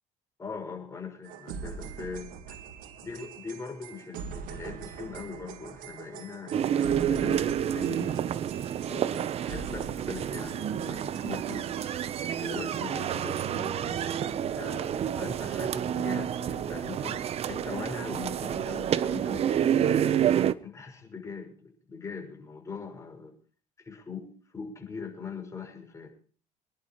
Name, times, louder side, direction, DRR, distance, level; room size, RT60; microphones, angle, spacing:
voice 1, 0.4-2.6 3.0-8.1 8.9-11.7 12.4-14.2 14.5-20.0 20.6-23.3 23.8-26.1, left 5 dB, 20° left, 6.1 m, -41 dB
sound 1, 1.2-12.6, right 6 dB, 80° right, 1.8 m, -43 dB
sound 2, 6.5-20.5, right 9 dB, 45° right, 0.8 m, -29 dB
27.0 x 11.0 x 3.1 m
cardioid pair, 120°, 14 cm